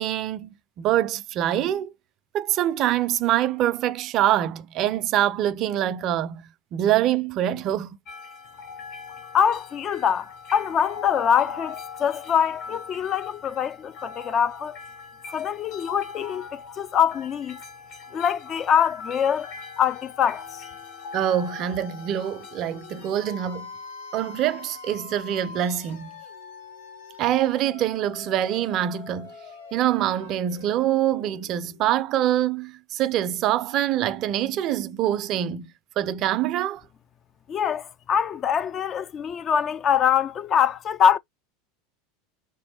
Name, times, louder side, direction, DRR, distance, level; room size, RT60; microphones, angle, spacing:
voice 1, 0.0-1.9 2.3-6.4 6.7-8.0 21.1-23.7 24.1-26.1 27.2-29.3 29.7-36.8, right 12 dB, 45° right, 0.4 m, -25 dB
sound 1, 8.1-23.1, left 5 dB, 50° left, 1.0 m, -41 dB
voice 2, 9.3-14.8 15.3-17.6 18.1-19.5 19.8-20.6 37.5-41.2, left 8 dB, 35° left, 0.3 m, -24 dB
sound 2, 19.2-32.0, left 5 dB, 75° left, 0.9 m, -44 dB
3.0 x 3.0 x 2.9 m
figure-of-eight pair, 80°, 0 cm